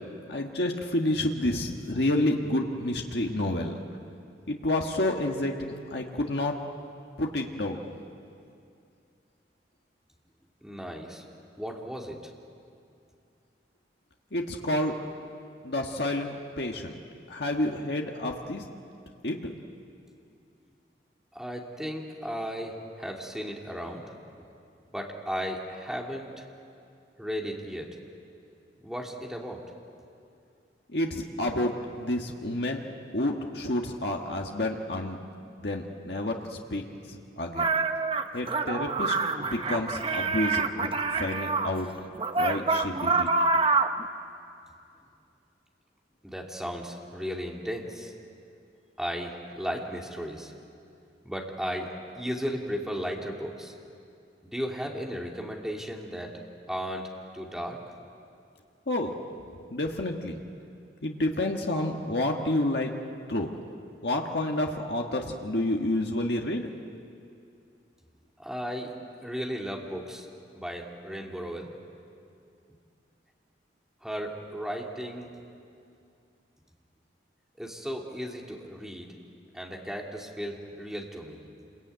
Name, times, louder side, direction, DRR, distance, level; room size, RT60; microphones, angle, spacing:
voice 1, 0.3-3.7 4.5-6.5 7.2-7.8 14.3-14.9 15.6-17.0 17.3-18.6 19.2-19.5 30.9-32.8 33.1-35.2 35.6-36.8 37.1-37.7 38.3-39.1 39.4-41.9 42.4-43.3 58.9-59.1 59.7-60.4 61.0-62.9 63.3-63.5 64.0-66.7, left 1 dB, 65° left, 1 dB, 1.6 m, -29 dB
voice 2, 10.6-11.2 11.6-12.2 21.3-24.2 24.9-26.5 27.2-27.9 28.8-29.6 46.2-48.1 49.0-50.5 51.2-51.9 52.1-53.7 54.4-56.3 56.7-57.8 68.4-68.9 69.2-70.3 70.5-71.7 74.0-75.3 77.6-79.1 79.5-81.4, equal, 5° right, -1 dB, 2.6 m, -35 dB
sound 1, 37.5-41.7 42.2-44.0, right 4 dB, 30° right, 0.9 m, -26 dB
27.5 x 22.0 x 9.3 m, 2.5 s
head